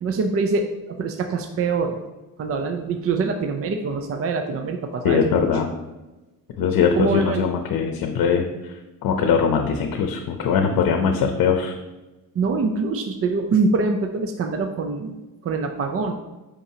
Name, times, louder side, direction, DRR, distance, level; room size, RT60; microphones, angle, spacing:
voice 1, 0.0-2.0 2.4-5.5 6.6-6.7 6.9-7.5 12.3-16.1, right 4 dB, 40° right, 5 dB, 0.5 m, -24 dB
voice 2, 5.0-5.7 6.6-8.7 9.0-11.7, left 6 dB, 80° left, 4 dB, 0.7 m, -21 dB
8.7 x 5.3 x 2.8 m, 1.1 s
cardioid pair, 140°, 35 cm